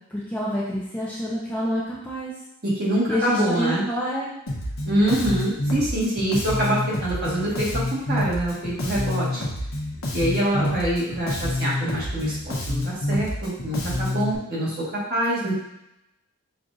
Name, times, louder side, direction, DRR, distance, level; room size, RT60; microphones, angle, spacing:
voice 1, 0.1-2.3 3.1-4.3, equal, 5° left, -7 dB, 0.6 m, -27 dB
voice 2, 2.6-3.8 4.8-9.4 10.1-15.5, right 1 dB, 45° right, -7 dB, 1.5 m, -25 dB
Bass guitar, 4.5-14.4, left 1 dB, 65° left, 0.8 m, -28 dB
6.0 x 2.6 x 2.5 m, 0.86 s
head